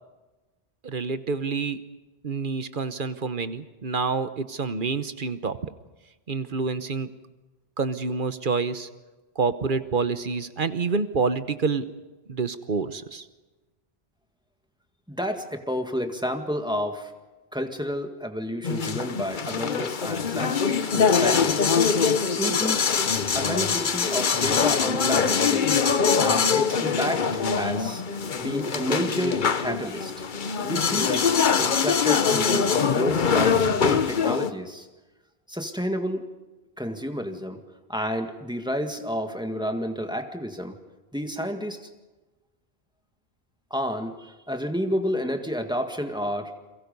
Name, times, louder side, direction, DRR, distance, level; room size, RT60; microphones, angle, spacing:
voice 1, 0.8-1.8 2.2-5.7 6.3-7.1 7.8-8.9 9.4-11.9 12.3-13.3, right 4 dB, 55° right, 11 dB, 1.2 m, -27 dB
voice 2, 15.1-17.1 17.5-21.6 22.2-23.0 23.3-25.9 26.2-28.0 28.4-30.1 30.6-34.9 35.5-36.3 36.8-37.6 37.9-40.8 41.1-41.9 43.7-46.5, equal, 5° right, 5 dB, 1.8 m, -30 dB
sound 1, 18.6-34.5, left 6 dB, 50° left, 1.0 m, -23 dB
29.5 x 23.0 x 5.4 m, 1.1 s
omnidirectional pair, 1.1 m